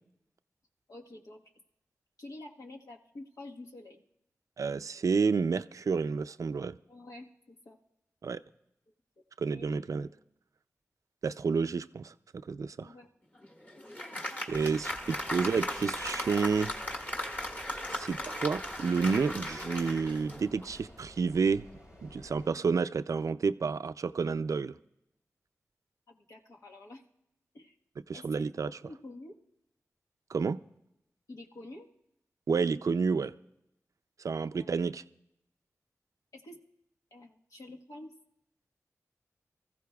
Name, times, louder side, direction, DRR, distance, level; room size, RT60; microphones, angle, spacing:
voice 1, 0.9-1.4 2.2-4.0 6.9-7.8 9.5-9.7 12.8-13.1 26.1-27.0 27.5-27.7 28.1-28.5 28.8-29.4 31.3-31.9 34.5-34.8 36.3-36.6 37.1-38.1, left 2 dB, 80° left, 0 dB, 1.3 m, -48 dB
voice 2, 4.6-6.8 8.2-8.4 9.4-10.1 11.2-12.1 12.5-12.9 14.5-16.7 17.9-21.7 22.0-24.7 28.1-28.7 30.3-30.6 32.5-33.3 34.2-35.0, right 5 dB, 70° right, 12 dB, 0.4 m, -30 dB
Applause, 13.3-20.9, left 1 dB, 30° left, 1.8 m, -37 dB
sound 1, 14.5-22.5, left 1 dB, 65° left, 5.4 m, -53 dB
24.0 x 15.0 x 2.3 m, 0.83 s
cardioid pair, 45°, 6 cm